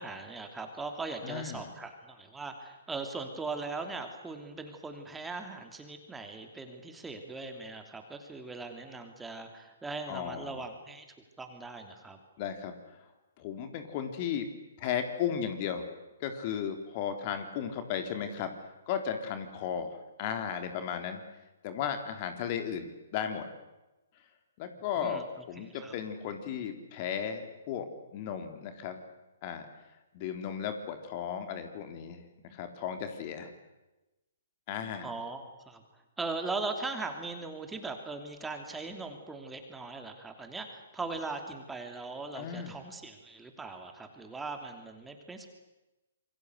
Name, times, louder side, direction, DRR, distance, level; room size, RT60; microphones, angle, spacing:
voice 1, 0.0-11.1 11.4-12.2 25.0-25.2 25.6-25.9 35.0-35.8 36.2-45.5, right 3 dB, 10° right, 5 dB, 3.1 m, -39 dB
voice 2, 1.2-1.7 10.1-10.6 12.4-12.7 13.4-14.5 14.8-15.9 16.2-18.5 18.9-21.2 21.6-23.5 24.6-29.0 29.4-29.7 30.1-33.5 34.7-35.1 42.3-42.8, left 8 dB, 40° left, 7 dB, 3.6 m, -35 dB
27.5 x 23.5 x 8.2 m, 1.0 s
figure-of-eight pair, 130°, 0 cm